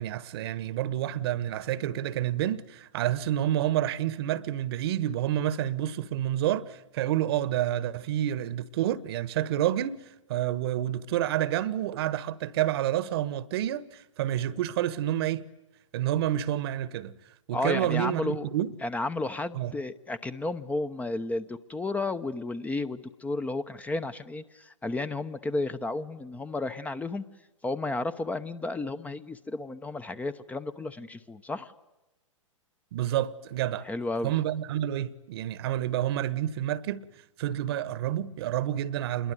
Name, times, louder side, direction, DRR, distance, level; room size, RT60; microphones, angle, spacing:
voice 1, 0.0-10.0 10.3-15.4 15.9-17.1 17.5-18.7 19.5-19.7 32.9-33.9 34.2-37.1 37.4-39.3, right 12 dB, 50° right, 1.3 m, -29 dB
voice 2, 17.5-18.5 18.8-27.2 27.6-31.7 33.8-34.3, left 2 dB, 10° left, 0.9 m, -32 dB
27.5 x 22.0 x 9.3 m
figure-of-eight pair, 115°, 17 cm